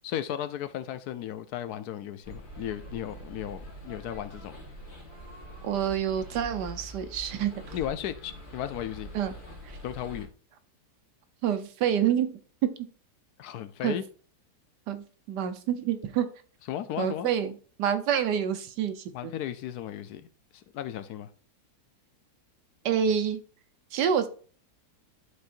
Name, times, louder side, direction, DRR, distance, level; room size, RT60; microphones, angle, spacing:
voice 1, 0.0-4.6 7.7-9.1 9.8-10.3 13.4-14.0 16.7-17.3 19.1-20.3 20.5-21.3, left 11 dB, 75° left, 1.1 m, -35 dB
sound 1, 2.2-10.3, equal, 30° left, 1.6 m, -44 dB
voice 2, 5.6-7.7 9.1-9.3 11.4-12.3 13.8-14.0 14.9-16.3 17.0-17.5 17.8-19.3 22.8-23.4 23.9-24.3, right 8 dB, 80° right, 1.4 m, -27 dB
11.5 x 4.3 x 2.5 m
omnidirectional pair, 1.8 m